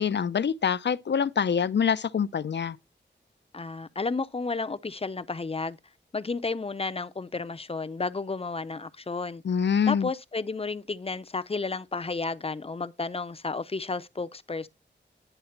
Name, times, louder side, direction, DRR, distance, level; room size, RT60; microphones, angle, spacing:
voice 1, 0.0-2.8 9.4-10.1, left 7 dB, 70° left, 0.6 m, -25 dB
voice 2, 3.5-5.8 6.1-9.4 9.9-14.7, left 3 dB, 30° left, 0.6 m, -32 dB
10.0 x 4.0 x 5.8 m
wide cardioid pair, 85°, 19 cm